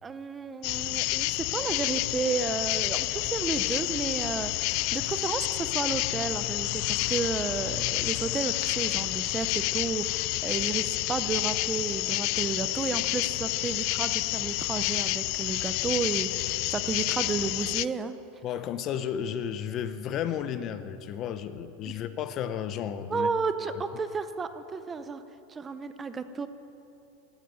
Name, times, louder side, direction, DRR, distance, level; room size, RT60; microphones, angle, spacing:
voice 1, 0.0-18.1 23.1-25.2 25.5-26.5, right 5 dB, 20° right, 11 dB, 0.7 m, -32 dB
sound 1, 0.6-17.8, left 22 dB, 55° left, 0.3 m, -29 dB
voice 2, 18.4-23.3, left 9 dB, 40° left, 11 dB, 0.8 m, -33 dB
15.5 x 9.2 x 9.2 m, 2.9 s
supercardioid pair, 125°, 0 cm